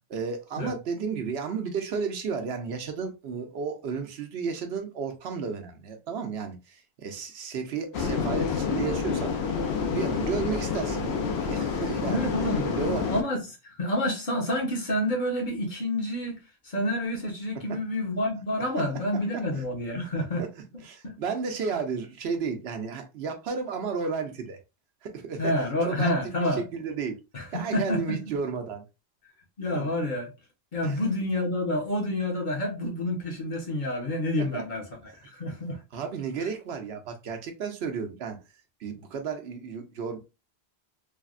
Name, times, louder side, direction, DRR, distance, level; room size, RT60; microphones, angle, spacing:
voice 1, 0.1-9.4 9.9-12.3 12.7-13.1 17.7-17.8 20.4-20.5 20.8-24.6 25.0-25.5 25.8-27.2 27.5-28.8 29.7-29.9 30.8-31.0 34.4-34.6 35.1-35.2 35.9-38.4 38.8-40.2, right 5 dB, 75° right, 0.9 m, -33 dB
sound 1, 7.9-13.2, left 5 dB, 75° left, 0.9 m, -28 dB
voice 2, 11.9-13.4 13.7-20.4 21.0-21.2 25.4-26.7 27.3-28.2 29.6-30.3 30.7-34.8 35.3-35.8, left 1 dB, 50° left, 0.9 m, -28 dB
3.4 x 2.1 x 2.4 m
omnidirectional pair, 1.1 m